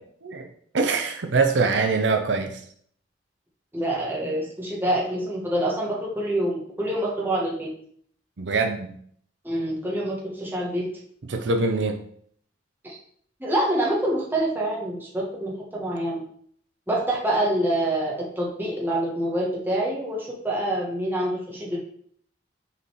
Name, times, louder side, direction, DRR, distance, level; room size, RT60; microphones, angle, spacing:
voice 1, 0.7-2.6 8.4-8.9 11.3-12.0, right 4 dB, 70° right, 5 dB, 0.6 m, -23 dB
voice 2, 3.7-7.7 9.4-10.9 12.8-13.0 13.4-16.2 16.9-21.8, right 1 dB, 10° right, -4 dB, 1.4 m, -26 dB
5.8 x 4.1 x 4.6 m, 0.62 s
head